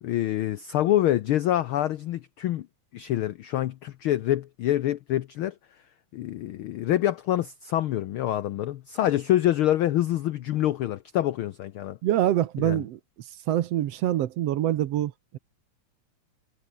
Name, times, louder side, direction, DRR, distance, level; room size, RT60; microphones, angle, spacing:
voice 1, 0.0-2.7 2.9-5.5 6.1-12.0 12.6-12.8, left 13 dB, 90° left, 1.1 m, -26 dB
voice 2, 12.0-13.0 13.5-15.4, right 12 dB, 65° right, 1.9 m, -25 dB
omnidirectional pair, 3.3 m